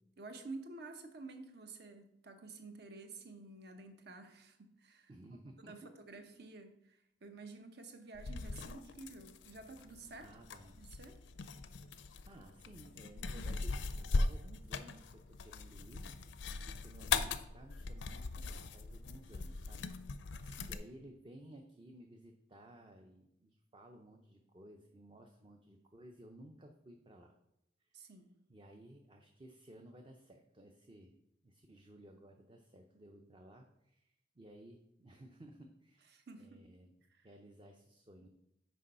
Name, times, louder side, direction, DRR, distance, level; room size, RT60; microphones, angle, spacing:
voice 1, 0.2-5.1 5.7-10.4 10.8-11.2 20.5-20.8 27.9-28.3 36.1-36.7 37.1-37.3, right 3 dB, 60° right, 7 dB, 0.9 m, -51 dB
voice 2, 5.1-6.0 10.2-10.8 12.3-16.1 16.6-19.9 20.7-27.3 27.8-28.1 28.5-31.1 31.4-36.1 36.4-36.9 37.2-38.3, right 1 dB, 25° right, 3 dB, 0.5 m, -57 dB
sound 1, 8.1-20.8, left 4 dB, 75° left, 0.5 m, -40 dB
6.3 x 4.6 x 5.5 m, 0.82 s
head